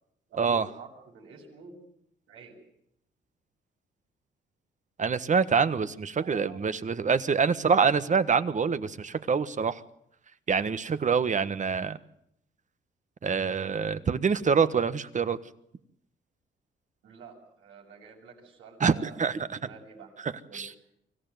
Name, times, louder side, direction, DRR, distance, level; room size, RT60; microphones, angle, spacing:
voice 1, 0.3-1.8 2.3-2.6 6.2-6.6 17.0-20.1 20.5-20.8, right 5 dB, 85° right, -2 dB, 7.4 m, -48 dB
voice 2, 5.0-9.8 10.5-12.0 13.2-15.4 18.8-19.5 20.2-20.7, right 6 dB, 40° right, 13 dB, 1.4 m, -26 dB
25.5 x 15.5 x 9.4 m, 0.75 s
cardioid pair, 90°, 20 cm